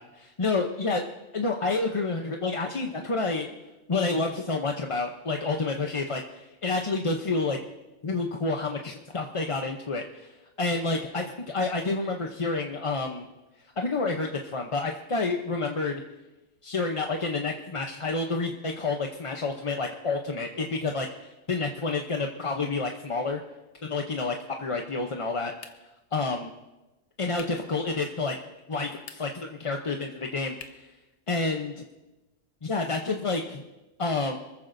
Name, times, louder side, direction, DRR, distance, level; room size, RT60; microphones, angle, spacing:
voice 1, 0.2-1.0 1.3-3.5 3.9-7.6 8.0-13.3 13.8-16.0 16.6-23.4 23.8-25.5 26.1-26.5 27.2-28.4 28.7-30.9 31.3-31.8 32.6-33.6 34.0-34.4, left 3 dB, 30° left, 2 dB, 0.7 m, -29 dB
sound 1, 25.6-26.1 27.3-27.7 28.9-29.5 30.6-31.0, left 6 dB, 80° left, 1.3 m, -47 dB
26.5 x 14.5 x 2.6 m, 1.1 s
omnidirectional pair, 1.2 m